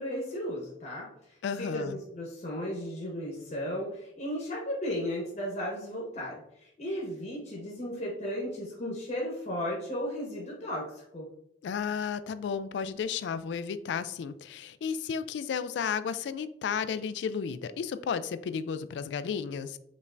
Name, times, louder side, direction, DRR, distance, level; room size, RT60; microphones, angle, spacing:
voice 1, 0.0-11.3, equal, 40° left, -3 dB, 0.9 m, -35 dB
voice 2, 1.4-2.0 11.6-19.8, left 6 dB, 80° left, 13 dB, 0.3 m, -33 dB
5.2 x 3.3 x 2.5 m, 0.76 s
head